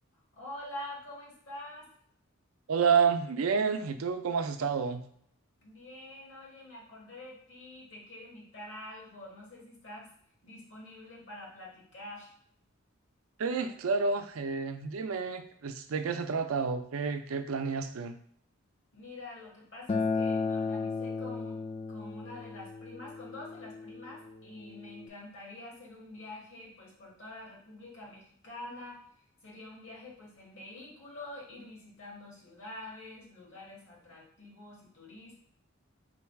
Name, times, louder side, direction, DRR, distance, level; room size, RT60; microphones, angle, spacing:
voice 1, 0.3-1.9 5.6-10.1 10.4-12.3 18.9-21.6 21.9-29.0 29.4-35.4, left 1 dB, 65° left, -4 dB, 1.6 m, -46 dB
voice 2, 2.7-5.0 13.4-18.1, right 5 dB, 85° right, 8 dB, 0.5 m, -29 dB
Acoustic guitar, 19.9-25.1, left 4 dB, 30° left, 0.3 m, -34 dB
3.8 x 2.3 x 4.5 m, 0.66 s
head